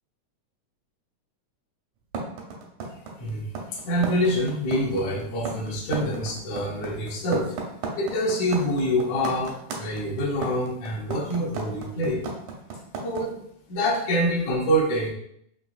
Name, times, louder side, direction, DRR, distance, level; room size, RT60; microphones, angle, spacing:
sound 1, 2.1-13.2, right 4 dB, 90° right, 2.5 m, -33 dB
voice 1, 3.9-7.6 8.0-9.5 9.8-12.2 13.0-13.4 13.7-15.1, equal, 70° left, -3 dB, 2.0 m, -25 dB
6.0 x 2.8 x 2.4 m, 0.70 s
omnidirectional pair, 3.7 m